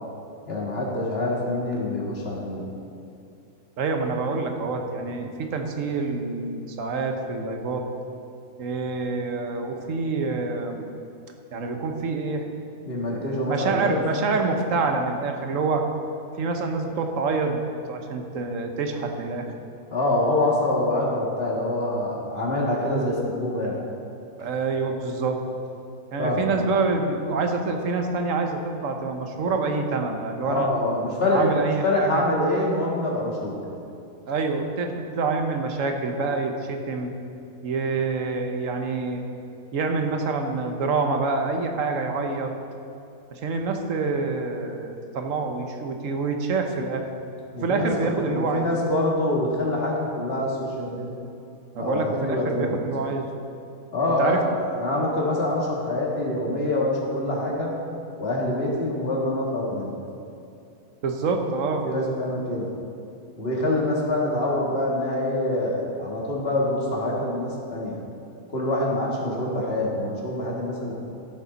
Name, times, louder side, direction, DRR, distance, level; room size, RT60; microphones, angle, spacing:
voice 1, 0.5-2.6 12.8-14.0 19.9-23.7 26.2-26.6 30.4-33.6 47.5-51.1 51.8-52.8 53.9-54.4 54.8-57.7 58.2-59.9 61.8-62.7 63.4-68.0 68.5-70.9, left 1 dB, 40° left, -3 dB, 2.0 m, -25 dB
voice 2, 3.8-7.9 8.6-10.9 11.5-12.5 13.0-15.8 16.4-19.5 24.4-25.4 26.1-30.7 31.3-32.2 34.3-37.1 37.6-39.2 39.7-42.5 43.3-47.1 47.6-48.7 51.7-53.3 54.2-54.4 61.0-61.9, right 4 dB, 60° right, 4 dB, 1.2 m, -27 dB
15.0 x 6.6 x 4.0 m, 2.6 s
omnidirectional pair, 1.6 m